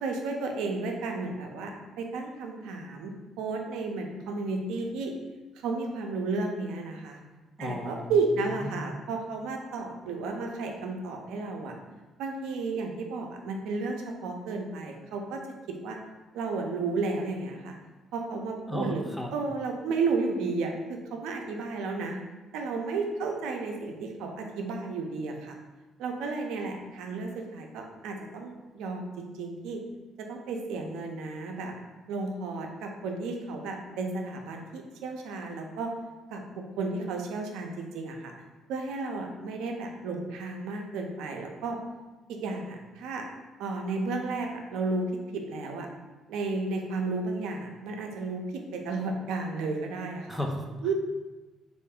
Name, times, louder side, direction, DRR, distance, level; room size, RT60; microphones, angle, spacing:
voice 1, 0.0-5.1 5.6-7.2 7.6-11.7 12.2-15.4 15.8-16.0 16.3-17.8 18.1-19.0 19.3-22.2 22.5-25.6 26.0-29.8 30.3-31.7 32.1-35.9 36.3-38.3 38.7-41.8 42.3-43.2 43.6-45.0 45.3-45.9 46.3-50.3 50.8-50.9, right 3 dB, 85° right, 2 dB, 0.4 m, -33 dB
voice 2, 7.6-8.1 8.7-8.8 18.7-19.3 50.3-50.6, left 1 dB, ahead, 2 dB, 0.5 m, -33 dB
3.3 x 2.5 x 3.5 m, 1.2 s
cardioid pair, 85°, 0 cm